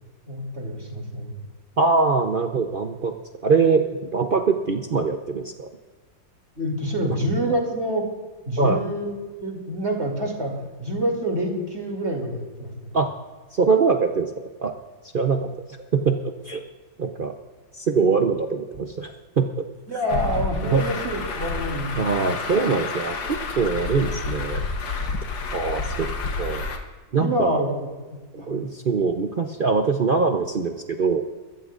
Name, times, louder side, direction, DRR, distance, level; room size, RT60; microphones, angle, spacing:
voice 1, 0.3-1.4 6.6-8.0 8.5-10.5 10.8-13.0 19.9-22.3 27.1-27.9 28.4-28.6, equal, 35° right, 1 dB, 3.1 m, -27 dB
voice 2, 1.8-3.1 3.4-5.7 8.6-8.8 12.9-13.1 13.5-14.7 15.1-15.5 15.9-16.2 16.4-16.6 17.0-17.3 17.8-19.7 20.6-20.8 22.0-24.6 25.5-26.1 26.4-26.7 27.1-27.6 28.3-31.2, right 4 dB, 65° right, 4 dB, 0.5 m, -23 dB
Truck, 20.1-26.8, left 4 dB, 85° left, 2.0 m, -29 dB
22.5 x 14.5 x 2.5 m, 1.3 s
omnidirectional pair, 2.0 m